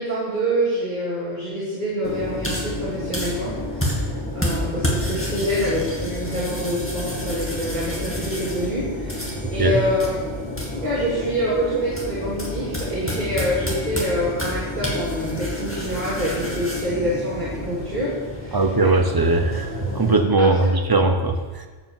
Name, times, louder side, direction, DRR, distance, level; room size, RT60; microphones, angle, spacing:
voice 1, 0.0-10.1 10.7-18.1 18.4-18.6 20.4-20.5, equal, 45° right, -7 dB, 2.7 m, -26 dB
sound 1, 2.0-20.2, left 1 dB, 10° left, 2.1 m, -29 dB
voice 2, 18.5-19.7 19.9-21.7, right 3 dB, 20° right, 5 dB, 0.9 m, -19 dB
12.0 x 5.8 x 7.4 m, 1.3 s
omnidirectional pair, 1.2 m